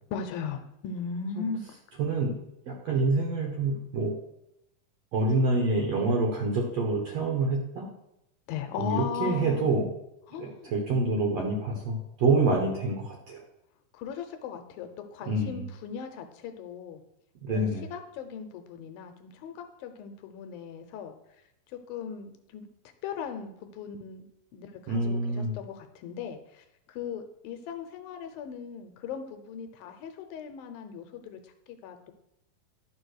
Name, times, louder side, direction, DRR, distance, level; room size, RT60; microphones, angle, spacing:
voice 1, 0.1-1.6 8.5-9.7 10.3-10.7 13.9-17.0 17.5-21.1 21.7-22.7 23.0-24.2 24.5-32.1, left 6 dB, 75° left, 7 dB, 2.4 m, -38 dB
voice 2, 2.0-2.3 2.7-4.1 5.1-7.9 8.8-9.9 10.4-13.4 15.2-15.6 17.4-17.8 24.9-25.5, right 2 dB, 60° right, 0 dB, 1.8 m, -27 dB
11.0 x 4.8 x 6.4 m, 0.83 s
omnidirectional pair, 4.4 m